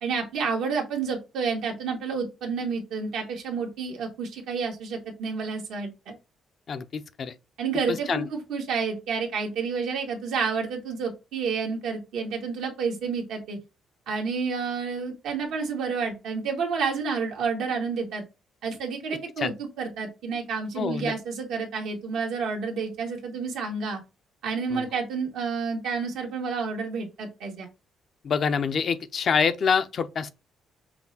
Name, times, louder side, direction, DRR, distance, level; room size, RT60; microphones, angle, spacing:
voice 1, 0.0-6.1 7.6-13.6 14.1-18.2 18.6-24.0 24.4-27.7, right 5 dB, 85° right, 1.5 m, -30 dB
voice 2, 6.7-7.3 7.9-8.3 19.4-19.5 20.8-21.1 24.7-24.9 28.2-30.3, left 6 dB, 55° left, 0.5 m, -26 dB
5.8 x 2.2 x 4.0 m
cardioid pair, 90°, 0 cm